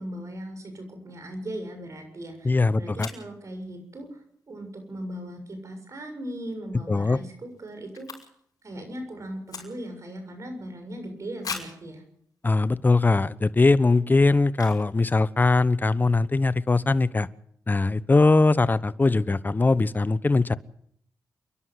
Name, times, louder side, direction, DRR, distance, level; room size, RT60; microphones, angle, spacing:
voice 1, 0.0-8.1 8.6-12.0, right 1 dB, 50° right, 6 dB, 7.0 m, -38 dB
sound 1, 2.3-2.4 3.0-3.3 6.3-6.5 6.8-6.9 7.1-8.6 8.9-10.1 10.6-10.7 11.4-11.9 12.6-12.7 13.2-13.3 14.5-15.0 15.2-15.3 15.5-15.8, left 6 dB, 65° left, 5.7 m, -39 dB
voice 2, 2.4-3.1 6.9-7.2 12.4-17.3 17.7-20.5, left 3 dB, 25° left, 17 dB, 1.0 m, -21 dB
29.0 x 11.0 x 8.2 m, 0.65 s
cardioid pair, 65°, 7 cm